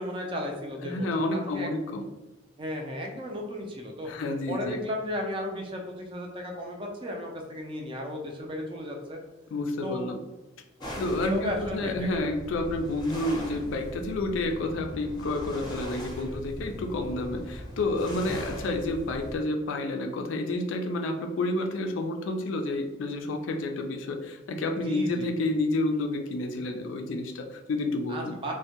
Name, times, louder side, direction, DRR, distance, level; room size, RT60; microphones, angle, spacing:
voice 1, 0.0-1.7 2.6-4.1 4.5-9.2 9.8-10.1 11.2-12.3 12.8-12.9 24.8-25.3 28.1-28.5, left 1 dB, 25° right, 1 dB, 0.4 m, -34 dB
voice 2, 0.8-2.1 4.0-4.8 9.5-10.2 11.0-28.4, left 2 dB, 80° left, 5 dB, 0.3 m, -30 dB
sound 1, 10.8-19.4, equal, 25° left, 0.6 m, -40 dB
2.1 x 2.1 x 2.8 m, 1.0 s
head